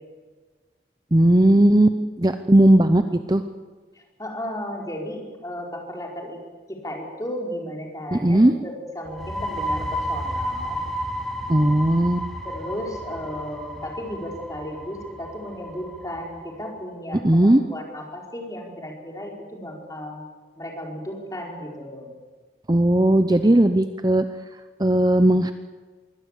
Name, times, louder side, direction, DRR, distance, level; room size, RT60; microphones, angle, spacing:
voice 1, 1.1-3.4 8.1-8.5 11.5-12.3 17.2-17.6 22.7-24.2 24.8-25.5, right 1 dB, 20° right, 9 dB, 0.7 m, -17 dB
voice 2, 3.9-6.4 6.7-10.8 12.4-20.2 20.5-22.1, equal, 20° left, 0 dB, 4.7 m, -34 dB
sound 1, 9.0-16.5, equal, ahead, 2.9 m, -32 dB
23.5 x 17.0 x 8.3 m, 1.4 s
head